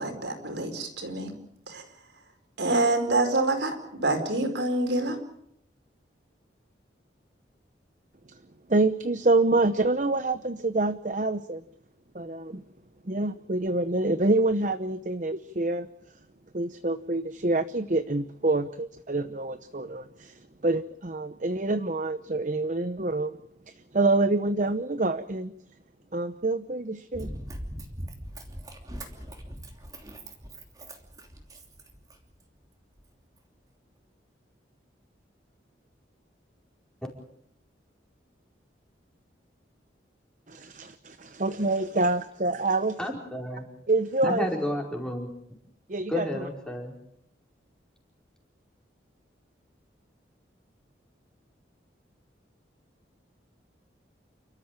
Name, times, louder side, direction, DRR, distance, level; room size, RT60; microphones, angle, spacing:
voice 1, 0.0-1.3 1.7-1.8 2.6-5.2, right 2 dB, 70° right, 6 dB, 4.6 m, -26 dB
voice 2, 8.7-11.6 12.1-12.6 13.1-15.9 16.5-23.4 23.9-25.5 26.1-27.3 40.5-43.0 43.9-44.5 45.9-46.5, right 2 dB, 45° right, 11 dB, 0.8 m, -26 dB
Run, 27.1-32.4 33.0-33.1, right 1 dB, 20° right, 3.0 m, -41 dB
voice 3, 43.0-43.7 44.2-45.3 46.1-46.9, equal, 5° left, 0 dB, 4.8 m, -31 dB
29.5 x 13.5 x 8.9 m, 0.73 s
head